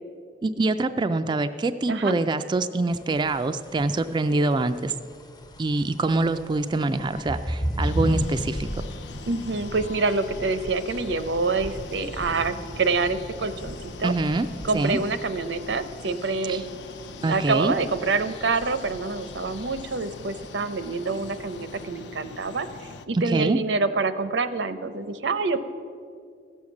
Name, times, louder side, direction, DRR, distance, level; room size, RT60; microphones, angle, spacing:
voice 1, 0.4-4.9 5.6-8.7 14.0-14.5 14.7-15.0 16.5-16.6 17.2-17.7 23.1-23.6, right 2 dB, 25° right, 9 dB, 0.3 m, -24 dB
sound 1, 2.9-21.9, equal, 25° left, 0.7 m, -43 dB
sound 2, 7.0-10.4 10.7-13.0 13.3-13.5 13.9-15.6, equal, 50° left, 1.1 m, -32 dB
sound 3, 7.8-23.1, left 4 dB, 70° left, 0.6 m, -43 dB
voice 2, 9.3-14.1 14.6-16.7 17.1-25.6, right 3 dB, 85° right, 11 dB, 0.7 m, -27 dB
15.0 x 6.4 x 7.1 m, 2.3 s
head